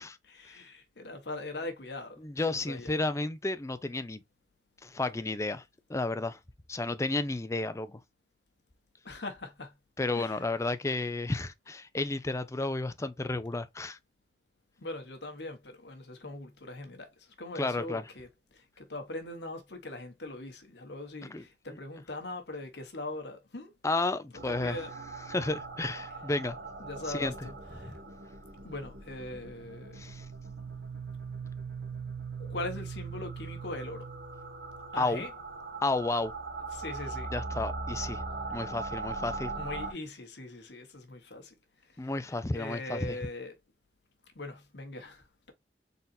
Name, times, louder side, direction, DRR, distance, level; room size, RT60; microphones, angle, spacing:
voice 1, 0.2-2.2 2.5-3.0 9.0-9.7 10.1-10.5 14.8-23.7 24.4-24.9 26.8-28.0 28.6-30.0 32.4-34.1 34.9-35.3 36.7-37.3 39.6-41.5 41.8-43.5 44.3-45.5, left 2 dB, 70° left, 1.3 m, -41 dB
voice 2, 2.2-4.2 4.8-5.6 5.9-6.4 6.7-8.0 10.0-14.0 17.6-18.0 21.3-21.4 21.7-21.8 23.8-24.8 25.3-26.6 27.1-27.3 27.9-28.0 30.0-30.2 35.0-35.2 35.8-36.3 37.3-38.2 38.5-39.5 42.0-43.2, left 2 dB, 15° left, 0.4 m, -32 dB
sound 1, 24.3-39.9, right 4 dB, 60° right, 1.2 m, -40 dB
4.1 x 4.0 x 2.6 m
head